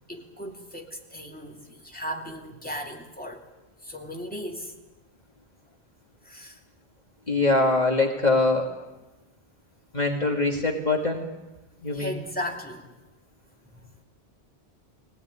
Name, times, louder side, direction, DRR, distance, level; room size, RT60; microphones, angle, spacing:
voice 1, 0.1-3.5 3.8-4.7 6.2-6.6 11.9-12.9 13.7-13.8, equal, 10° left, 1 dB, 2.7 m, -36 dB
voice 2, 7.3-8.7 9.9-11.3 11.8-12.1, left 2 dB, 40° left, 1 dB, 2.2 m, -23 dB
22.0 x 18.0 x 9.7 m, 1.1 s
omnidirectional pair, 1.1 m